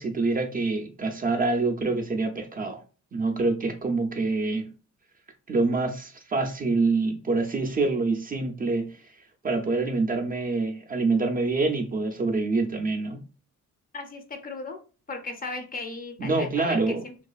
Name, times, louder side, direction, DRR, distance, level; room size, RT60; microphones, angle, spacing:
voice 1, 0.0-2.8 3.1-4.7 5.5-9.0 9.4-13.2 16.2-17.0, right 3 dB, 30° right, 0.4 m, -26 dB
voice 2, 13.9-14.8 15.1-17.1, left 3 dB, 30° left, 0.4 m, -36 dB
2.4 x 2.4 x 2.3 m
cardioid pair, 90°, 30 cm